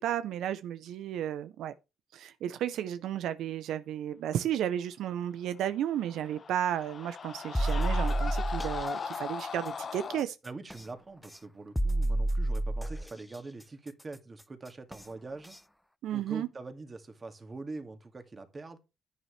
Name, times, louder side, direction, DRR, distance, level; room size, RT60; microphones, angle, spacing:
voice 1, 0.0-1.7 2.1-10.4 16.0-16.5, right 10 dB, 80° right, 0.6 m, -33 dB
Screaming, 5.8-10.3, left 6 dB, 45° left, 0.9 m, -38 dB
sound 1, 7.5-8.8 10.7-10.8 11.8-13.1 14.9-15.0 15.5-15.6, right 1 dB, 5° left, 0.5 m, -29 dB
voice 2, 10.4-15.6 16.1-18.8, right 3 dB, 30° right, 2.1 m, -44 dB
11.0 x 9.1 x 3.2 m
cardioid pair, 90°, 0 cm